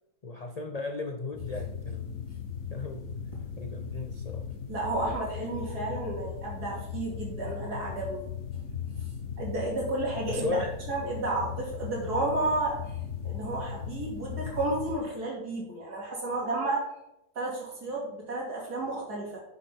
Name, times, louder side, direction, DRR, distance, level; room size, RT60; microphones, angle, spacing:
voice 1, 0.2-2.2 2.7-3.1 3.6-4.5 10.3-10.7, left 3 dB, 80° left, 5 dB, 0.3 m, -36 dB
sound 1, 1.3-15.0, left 7 dB, 50° left, 1.3 m, -38 dB
voice 2, 4.7-8.2 9.4-10.6 10.9-12.8 13.2-16.9 17.3-19.4, right 2 dB, 75° right, -3 dB, 3.1 m, -32 dB
10.0 x 6.1 x 3.6 m, 0.85 s
omnidirectional pair, 1.7 m